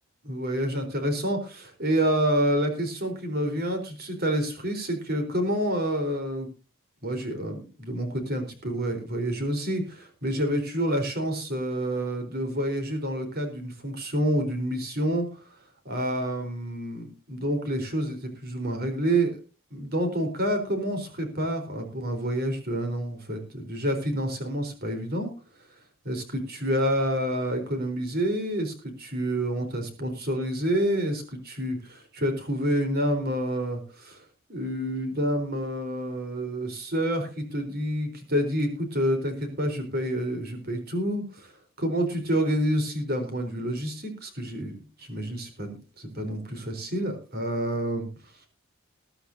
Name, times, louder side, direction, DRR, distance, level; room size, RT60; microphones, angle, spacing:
voice 1, 0.2-6.5 7.0-15.4 15.9-19.4 19.7-25.3 26.0-34.2 34.5-41.5 41.8-48.1, right 1 dB, 45° right, 5 dB, 4.0 m, -28 dB
21.0 x 11.5 x 2.7 m, 0.33 s
head